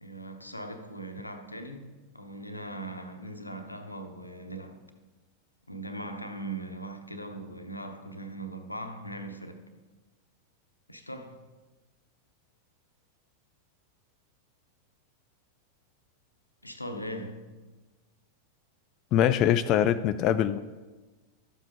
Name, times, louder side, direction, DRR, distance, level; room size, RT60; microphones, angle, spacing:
voice 1, 0.0-4.9 5.7-9.6 10.9-11.4 16.6-17.4, right 1 dB, 85° left, 0.9 m, -40 dB
voice 2, 19.1-20.6, left 10 dB, 35° left, 0.3 m, -23 dB
12.5 x 7.4 x 3.6 m
figure-of-eight pair, 90°, 0 cm